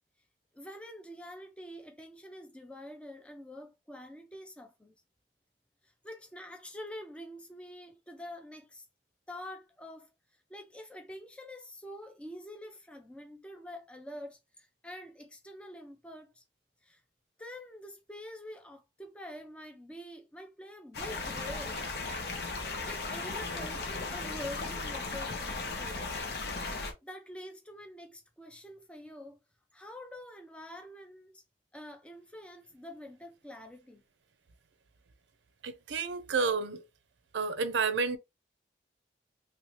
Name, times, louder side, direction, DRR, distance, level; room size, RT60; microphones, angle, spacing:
voice 1, 0.5-4.9 5.8-8.9 9.3-10.1 10.5-16.4 16.8-17.0 17.4-21.8 22.8-26.2 27.0-29.4 29.7-31.4 31.7-34.0, left 1 dB, 5° left, 0.5 m, -46 dB
sound 1, 20.9-26.9, left 3 dB, 60° left, 0.8 m, -36 dB
voice 2, 35.6-36.8 37.3-38.2, right 4 dB, 80° right, 0.5 m, -30 dB
3.1 x 2.7 x 3.0 m
head